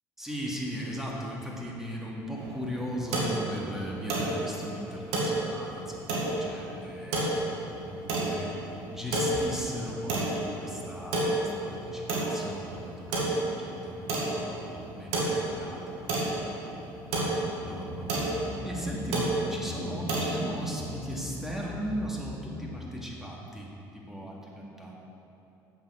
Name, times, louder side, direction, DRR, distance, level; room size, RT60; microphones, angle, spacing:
voice 1, 0.2-6.1 6.4-7.3 7.9-8.5 8.9-16.6 17.1-18.1 18.6-25.0, equal, 5° right, -4 dB, 2.5 m, -38 dB
sound 1, 2.4-21.1, right 2 dB, 80° right, 1.9 m, -31 dB
sound 2, 17.6-22.9, left 4 dB, 70° left, 1.1 m, -41 dB
7.7 x 7.2 x 6.6 m, 2.9 s
supercardioid pair, 70°, 10 cm